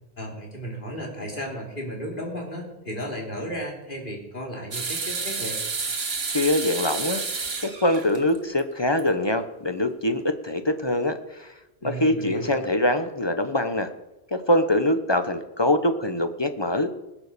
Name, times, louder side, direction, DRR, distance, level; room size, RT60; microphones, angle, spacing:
voice 1, 0.2-5.6 11.8-12.6, equal, 55° left, 0 dB, 3.5 m, -34 dB
sound 1, 4.7-8.6 9.0-9.1 10.2-10.3, right 4 dB, 70° right, 1.6 m, -30 dB
voice 2, 6.3-7.2 7.6-11.5 11.8-13.9 14.3-16.9, left 1 dB, 25° left, 8 dB, 0.9 m, -23 dB
20.5 x 7.3 x 6.8 m, 0.98 s
omnidirectional pair, 1.0 m